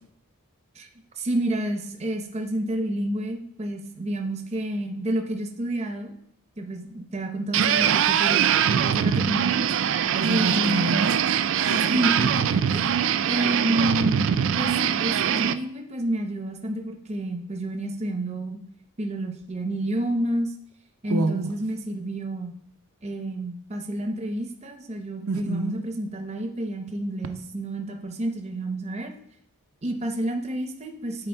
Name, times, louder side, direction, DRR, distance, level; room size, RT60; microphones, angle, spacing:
voice 1, 1.2-6.1 6.6-9.7 10.3-10.9 11.9-13.0 13.3-18.6 19.0-20.5 21.0-22.6 23.0-29.1 29.8-31.3, right 1 dB, 30° right, 3 dB, 0.7 m, -29 dB
sound 1, 7.5-15.5, right 8 dB, 55° right, 0.3 m, -23 dB
voice 2, 10.2-11.9 21.1-21.5 25.3-25.8, right 3 dB, 80° right, 6 dB, 0.7 m, -28 dB
7.8 x 4.4 x 4.4 m, 0.72 s
head